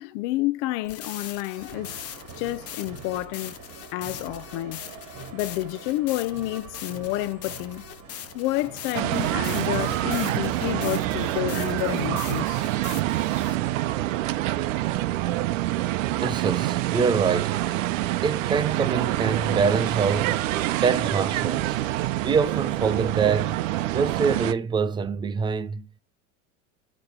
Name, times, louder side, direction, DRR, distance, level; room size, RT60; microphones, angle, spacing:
voice 1, 0.0-2.1 2.3-3.6 3.9-4.8 5.3-7.8 8.3-12.6, left 17 dB, 60° left, 0.5 m, -29 dB
sound 1, 0.8-13.6, left 10 dB, 40° left, 0.9 m, -41 dB
sound 2, 1.6-13.9, right 5 dB, 40° right, 2.0 m, -45 dB
sound 3, 8.9-24.5, right 15 dB, 85° right, 0.6 m, -26 dB
voice 2, 16.2-17.7 18.2-20.4 20.8-21.8 22.2-23.7 23.9-25.9, right 5 dB, 15° right, 0.3 m, -25 dB
6.4 x 3.1 x 5.4 m
supercardioid pair, 115°, 38 cm